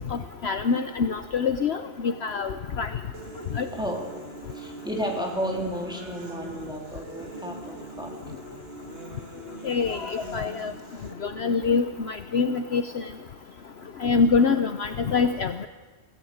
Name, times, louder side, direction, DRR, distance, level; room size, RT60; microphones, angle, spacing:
voice 1, 0.1-2.9 3.5-3.7 9.6-10.7 11.2-13.0 14.0-15.7, left 5 dB, 55° left, 9 dB, 1.1 m, -25 dB
sound 1, 3.1-11.1, right 2 dB, 50° right, 2.3 m, -42 dB
voice 2, 3.7-4.1 4.5-8.4, equal, 5° right, 0 dB, 3.6 m, -32 dB
23.0 x 16.5 x 8.8 m, 1.4 s
omnidirectional pair, 1.4 m